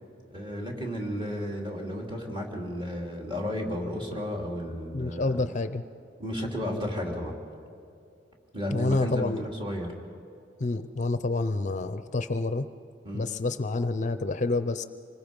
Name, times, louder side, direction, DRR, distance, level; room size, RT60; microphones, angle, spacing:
voice 1, 0.3-5.5 6.2-7.4 8.5-9.9 13.0-13.2, equal, 25° right, 0 dB, 3.1 m, -33 dB
voice 2, 4.9-5.8 8.7-9.4 10.6-12.7 13.1-14.8, left 3 dB, 40° left, 11 dB, 0.6 m, -28 dB
26.0 x 20.5 x 5.4 m, 2.6 s
head